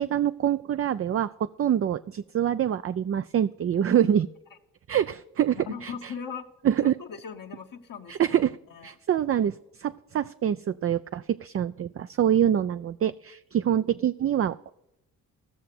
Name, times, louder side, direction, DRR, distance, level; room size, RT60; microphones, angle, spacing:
voice 1, 0.0-4.3 4.9-6.1 6.6-6.9 8.1-8.6 8.8-14.7, right 10 dB, 35° right, 12 dB, 0.4 m, -25 dB
voice 2, 5.6-6.5 6.8-8.4 8.7-8.9, left 6 dB, 60° left, 2 dB, 1.2 m, -39 dB
15.5 x 6.5 x 6.0 m, 0.86 s
supercardioid pair, 45°, 38 cm